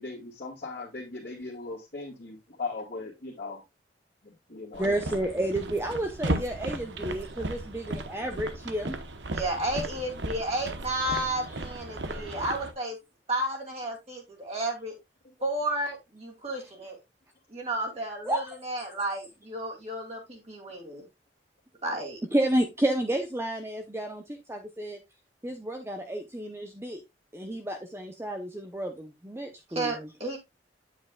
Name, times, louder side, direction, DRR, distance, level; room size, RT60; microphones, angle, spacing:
voice 1, 0.0-3.6 4.2-4.9 5.3-5.4, left 3 dB, 50° left, -7 dB, 2.0 m, -38 dB
sound 1, 4.7-12.7, right 2 dB, 90° right, 1.0 m, -35 dB
voice 2, 4.8-9.0 18.3-18.5 22.3-25.0 25.4-27.0 27.3-29.9, right 1 dB, 15° right, 4 dB, 0.7 m, -31 dB
voice 3, 9.3-13.0 13.3-14.9 15.4-17.0 17.5-21.0 21.8-22.2 29.7-30.4, right 1 dB, 35° right, -1 dB, 2.5 m, -32 dB
8.7 x 7.3 x 2.3 m, 0.21 s
head